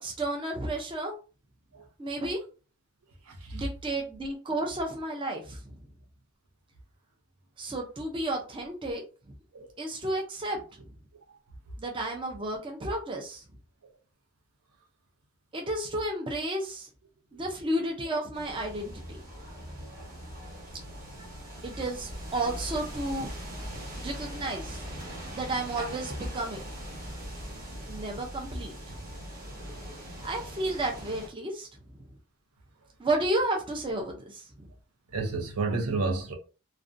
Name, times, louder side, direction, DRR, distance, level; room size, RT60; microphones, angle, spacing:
voice 1, 0.0-1.2 2.0-2.4 3.5-5.7 7.6-9.0 9.3-9.4 9.8-10.6 11.8-13.4 15.5-16.9 17.3-19.2 21.6-23.3 24.0-24.9 25.3-26.7 27.9-29.0 30.2-31.7 33.0-34.7, right 1 dB, 20° right, 0.4 m, -32 dB
voice 2, 3.2-3.7 9.5-9.7 11.3-11.4 19.7-20.1 21.2-21.8 23.8-23.9 25.0-25.4 29.6-29.9 35.1-36.3, right 3 dB, 85° right, 0.6 m, -33 dB
sound 1, 18.3-31.3, equal, 35° right, 0.9 m, -41 dB
2.5 x 2.1 x 2.5 m
head